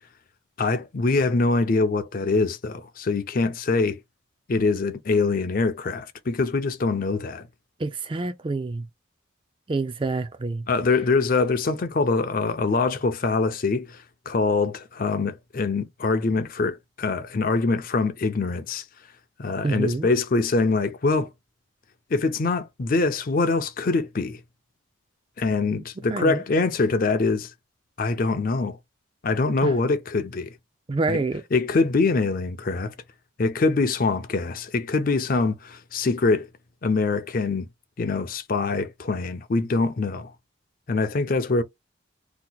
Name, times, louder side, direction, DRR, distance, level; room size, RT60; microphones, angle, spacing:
voice 1, 0.6-4.0 4.5-7.5 10.7-14.0 14.3-18.8 19.4-21.3 22.1-24.4 25.4-27.5 28.0-28.8 29.2-30.5 31.1-31.2 31.5-32.9 33.4-36.5 36.8-37.7 38.0-40.3 40.9-41.6, left 3 dB, 45° left, 0.4 m, -24 dB
voice 2, 7.8-8.9 9.7-10.6 19.6-20.1 26.1-26.4 29.6-29.7 30.9-31.4, right 3 dB, 25° right, 0.3 m, -27 dB
2.9 x 2.2 x 3.8 m
head